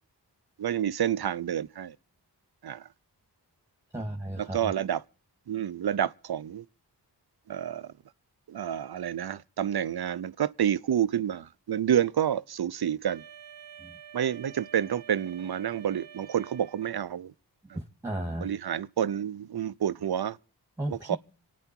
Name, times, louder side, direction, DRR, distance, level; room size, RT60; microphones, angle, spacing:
voice 1, 0.6-1.9 2.6-2.8 4.4-5.0 5.5-6.6 7.5-7.9 8.5-13.2 14.1-17.3 18.4-20.4 20.9-21.2, right 9 dB, 60° right, 0.6 m, -29 dB
voice 2, 3.9-4.7 13.8-14.0 17.7-18.5 20.8-21.2, right 1 dB, 5° right, 1.9 m, -34 dB
Wind instrument woodwind instrument, 13.0-17.2, right 8 dB, 80° right, 1.0 m, -49 dB
26.0 x 9.3 x 4.4 m
cardioid pair, 45°, 42 cm